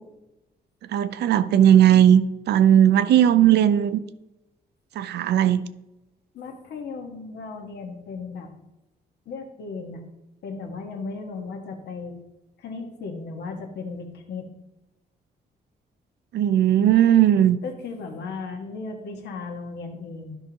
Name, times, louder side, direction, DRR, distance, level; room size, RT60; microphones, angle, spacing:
voice 1, 0.9-2.2 2.5-4.0 5.0-5.7 16.3-17.6, right 10 dB, 85° right, 13 dB, 0.5 m, -17 dB
voice 2, 6.3-8.5 9.2-10.0 10.4-12.2 12.6-14.5 17.6-20.4, left 4 dB, 90° left, 4 dB, 1.4 m, -36 dB
11.5 x 5.7 x 2.9 m, 0.95 s
wide cardioid pair, 170°, 17 cm